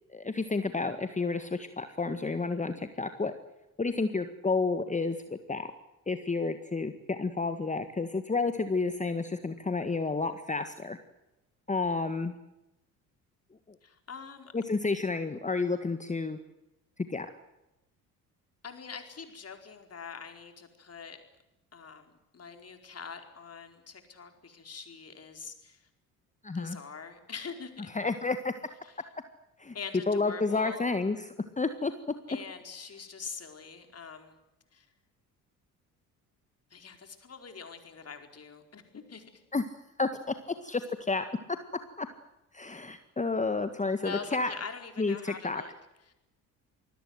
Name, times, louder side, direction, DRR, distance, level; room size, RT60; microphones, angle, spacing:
voice 1, 0.1-3.3 3.8-5.7 6.1-11.0 11.7-12.3 14.5-16.4 17.1-17.3 26.4-26.8 27.9-28.5 29.6-29.7 30.1-31.9 39.5-39.6 40.0-41.3 42.0-42.1 42.5-44.5 45.0-45.6, left 3 dB, 15° left, 9 dB, 1.7 m, -30 dB
voice 2, 13.8-14.5 18.6-21.2 21.7-25.9 26.5-27.9 28.8-28.9 29.7-30.8 32.3-34.4 34.7-34.9 36.7-39.4 44.0-45.7, left 5 dB, 35° left, 5 dB, 4.7 m, -44 dB
27.0 x 21.0 x 8.0 m, 0.95 s
figure-of-eight pair, 50°, 45 cm